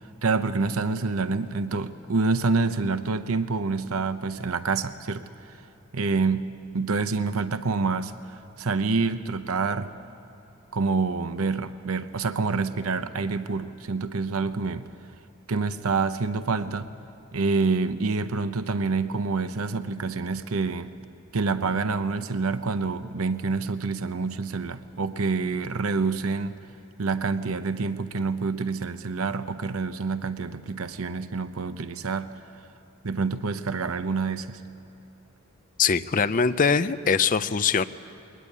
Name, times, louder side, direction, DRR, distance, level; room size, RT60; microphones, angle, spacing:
voice 1, 0.2-5.6 5.9-9.9 10.7-14.9 15.5-16.9 17.3-20.9 21.3-26.6 27.0-32.3 33.0-34.6, right 4 dB, 80° right, 11 dB, 0.8 m, -27 dB
voice 2, 35.8-37.8, left 6 dB, 40° left, 12 dB, 0.5 m, -22 dB
22.0 x 19.5 x 8.5 m, 3.0 s
head